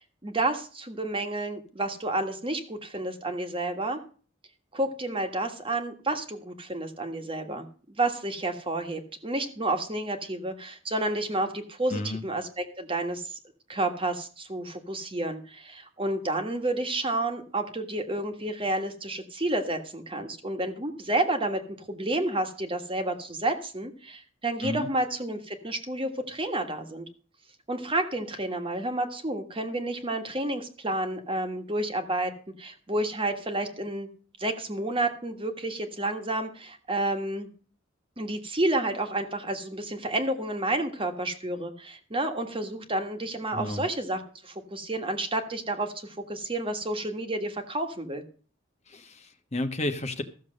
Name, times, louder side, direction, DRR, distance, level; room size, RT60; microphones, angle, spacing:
voice 1, 0.2-4.0 4.7-13.4 13.7-27.1 27.7-32.3 32.6-34.1 34.4-37.5 38.2-48.2, right 2 dB, 30° right, 6 dB, 1.7 m, -30 dB
voice 2, 11.9-12.2 24.6-24.9 43.5-43.9 48.9-50.2, left 1 dB, 35° left, 6 dB, 1.3 m, -32 dB
14.0 x 7.0 x 6.5 m, 0.40 s
head